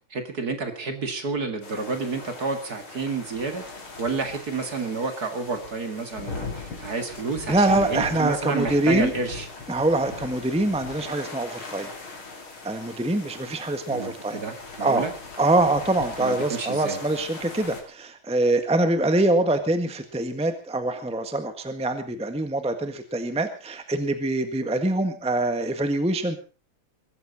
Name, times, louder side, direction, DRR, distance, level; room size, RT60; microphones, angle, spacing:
voice 1, 0.1-3.6 4.0-9.5 13.9-15.1 16.2-17.0, right 4 dB, 50° right, 6 dB, 2.6 m, -30 dB
sound 1, 1.6-17.8, left 4 dB, 90° left, 4.2 m, -40 dB
voice 2, 7.5-9.1 9.7-11.9 12.6-14.4 14.8-15.1 15.4-26.4, right 2 dB, 5° right, 8 dB, 1.4 m, -24 dB
22.5 x 14.0 x 4.1 m, 0.33 s
omnidirectional pair, 2.2 m